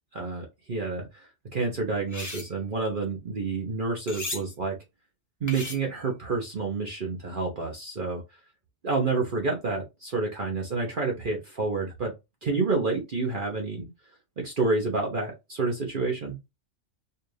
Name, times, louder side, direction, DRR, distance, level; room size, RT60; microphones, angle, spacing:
voice 1, 0.1-4.7 5.4-8.2 8.8-12.1 12.4-13.9 14.4-16.4, right 3 dB, 45° right, 1 dB, 0.9 m, -29 dB
sound 1, 2.0-2.5 4.1-4.4 5.5-6.0, left 2 dB, 20° left, 0.6 m, -36 dB
4.5 x 2.4 x 3.2 m, 0.23 s
omnidirectional pair, 1.3 m